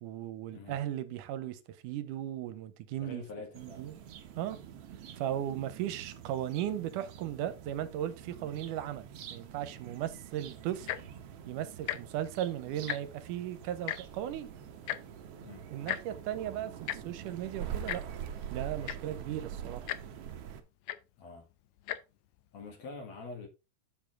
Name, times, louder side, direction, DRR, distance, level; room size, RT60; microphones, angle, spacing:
voice 1, 0.0-3.2 3.6-4.0 4.4-4.6 5.2-11.0 11.5-14.5 15.7-18.0 18.5-19.9, right 11 dB, 80° right, 2.2 m, -37 dB
voice 2, 3.0-3.9 4.4-4.6 15.4-15.6 21.2-21.5 22.5-23.5, left 3 dB, 55° left, 2.9 m, -45 dB
sound 1, 3.5-20.6, right 9 dB, 65° right, 1.6 m, -45 dB
Tick-tock, 10.8-11.1 11.8-12.0 12.3-12.4 12.7-13.2 13.9-14.0 14.9-15.0 15.9-16.0 16.9-17.0 17.9-18.0 18.6-18.7 18.8-19.2 19.9-20.0 20.9-21.0 21.8-22.0 22.7-22.8, left 13 dB, 75° left, 1.8 m, -35 dB
7.4 x 7.1 x 3.6 m
omnidirectional pair, 3.7 m